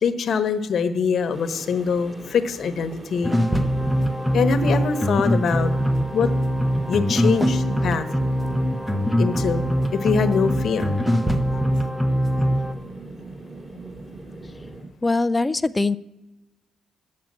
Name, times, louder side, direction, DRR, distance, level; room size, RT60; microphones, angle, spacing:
voice 1, 0.0-3.3 4.3-5.7 6.1-6.3 6.9-8.1 9.2-9.6 9.9-10.9 11.5-11.6, left 6 dB, 55° left, 9 dB, 1.1 m, -23 dB
sound 1, 1.3-14.8, right 2 dB, 25° right, 3.4 m, -41 dB
sound 2, 3.2-12.7, equal, 5° right, 0.9 m, -22 dB
voice 2, 15.0-16.0, left 3 dB, 20° left, 15 dB, 0.4 m, -21 dB
9.2 x 7.4 x 8.8 m, 0.99 s
cardioid pair, 90°, 0 cm